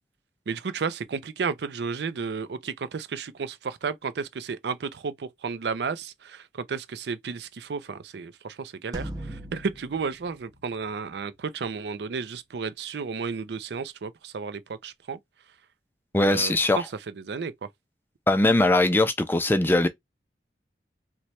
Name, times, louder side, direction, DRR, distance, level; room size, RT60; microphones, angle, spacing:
voice 1, 0.5-15.2 16.1-17.7, right 5 dB, 70° right, 0.4 m, -33 dB
sound 1, 8.9-11.5, right 1 dB, 20° right, 0.8 m, -40 dB
voice 2, 16.1-16.8 18.3-19.9, left 2 dB, 10° left, 0.4 m, -20 dB
3.1 x 2.2 x 4.2 m
head